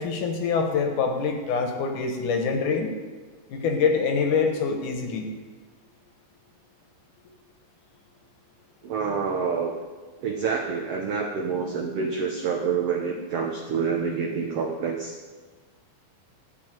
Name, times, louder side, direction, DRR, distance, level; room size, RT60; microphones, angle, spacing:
voice 1, 0.0-3.0 3.5-5.3, left 5 dB, 65° left, 4 dB, 2.6 m, -25 dB
voice 2, 8.8-9.7 10.2-15.2, right 5 dB, 85° right, 2 dB, 1.3 m, -27 dB
13.0 x 5.8 x 9.1 m, 1.4 s
omnidirectional pair, 4.2 m